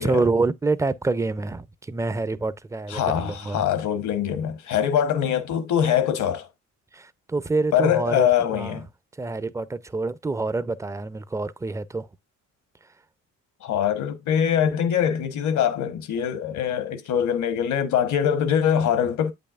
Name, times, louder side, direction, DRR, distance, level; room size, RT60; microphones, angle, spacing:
voice 1, 0.0-3.6 6.9-8.3 8.5-8.8 9.2-12.1, right 3 dB, 10° right, 0.4 m, -26 dB
voice 2, 2.9-6.5 7.7-8.9 13.6-19.3, left 9 dB, 75° left, 1.1 m, -23 dB
8.3 x 5.5 x 2.4 m
cardioid pair, 90°, 30 cm